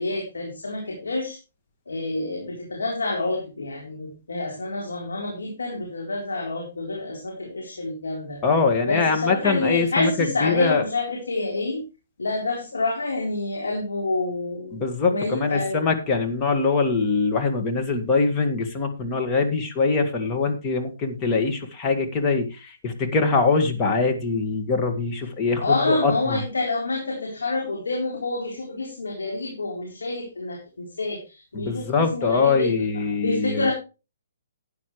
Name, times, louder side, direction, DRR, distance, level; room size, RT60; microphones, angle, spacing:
voice 1, 0.0-1.4 1.9-8.4 8.8-11.8 12.2-14.8 15.1-15.9 25.6-33.7, left 2 dB, 90° left, 0 dB, 3.9 m, -28 dB
voice 2, 8.4-10.8 14.7-26.4 31.5-33.7, left 4 dB, 25° left, 4 dB, 2.0 m, -23 dB
12.5 x 9.5 x 3.2 m, 0.29 s
hypercardioid pair, 145°, 0 cm